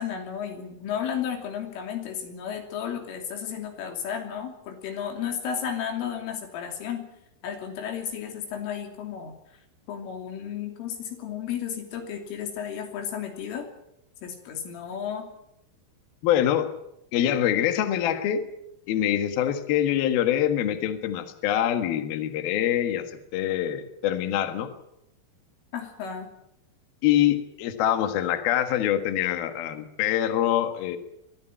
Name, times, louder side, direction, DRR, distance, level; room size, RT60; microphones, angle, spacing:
voice 1, 0.0-7.1 7.4-9.3 9.9-13.7 14.2-15.3 25.7-26.3, left 8 dB, 85° left, 4 dB, 5.5 m, -33 dB
voice 2, 16.2-16.7 17.1-18.4 18.9-23.1 23.3-24.7 27.0-31.0, left 11 dB, 60° left, 8 dB, 2.9 m, -24 dB
23.5 x 15.0 x 9.0 m, 0.82 s
omnidirectional pair, 5.6 m